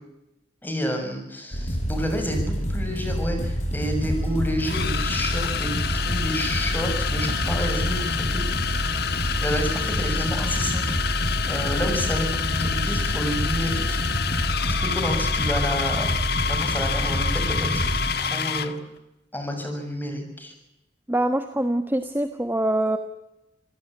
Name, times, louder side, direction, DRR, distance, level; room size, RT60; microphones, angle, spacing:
voice 1, 0.6-8.4 9.4-11.0 11.5-14.0 14.6-16.1 16.4-18.7 19.3-20.5, equal, 10° left, 5 dB, 6.8 m, -30 dB
fighting music, 1.5-18.1, equal, 40° left, 7.8 m, -27 dB
sound 1, 3.4-3.5 4.6-18.8, left 7 dB, 60° left, 1.7 m, -28 dB
voice 2, 21.1-23.0, right 1 dB, 10° right, 8 dB, 1.3 m, -24 dB
27.5 x 17.0 x 9.8 m, 0.90 s
head